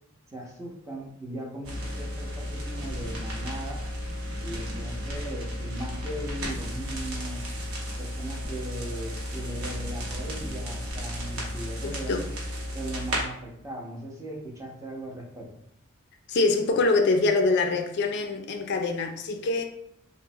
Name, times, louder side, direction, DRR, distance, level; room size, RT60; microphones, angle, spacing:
voice 1, 0.3-3.8 4.4-7.4 8.0-12.2 12.7-15.5, right 1 dB, 15° right, 0.5 m, -38 dB
sound 1, 1.6-13.2, equal, 85° right, 0.8 m, -33 dB
voice 2, 11.8-12.3 16.3-19.6, left 3 dB, 55° left, 0.3 m, -24 dB
2.9 x 2.0 x 2.6 m
head